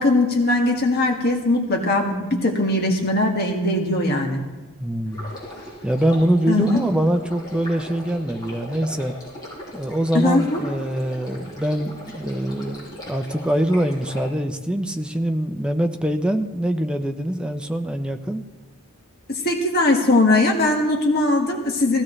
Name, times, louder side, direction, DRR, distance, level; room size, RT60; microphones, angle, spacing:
voice 1, 0.0-4.5 6.5-6.8 10.1-10.6 19.3-22.0, left 2 dB, 45° left, 1 dB, 1.8 m, -20 dB
voice 2, 4.8-5.3 5.8-9.1 9.7-18.4, right 1 dB, 5° right, 6 dB, 0.7 m, -23 dB
Stream, 5.1-14.2, equal, 20° left, 6.3 m, -38 dB
19.5 x 16.0 x 3.3 m, 1.2 s
head